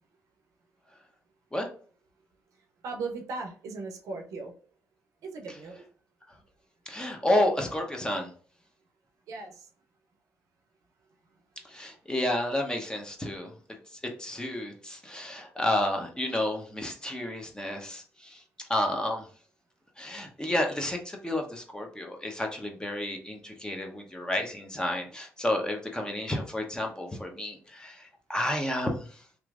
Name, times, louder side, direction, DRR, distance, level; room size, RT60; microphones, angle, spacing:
voice 1, 2.8-4.5 5.2-5.8 9.3-9.7, right 3 dB, 70° right, 3 dB, 0.6 m, -37 dB
voice 2, 6.9-8.3 11.7-13.5 14.0-18.4 18.7-19.3 20.0-29.1, left 1 dB, 15° left, 2 dB, 0.9 m, -31 dB
2.9 x 2.5 x 2.4 m, 0.44 s
supercardioid pair, 55°, 6 cm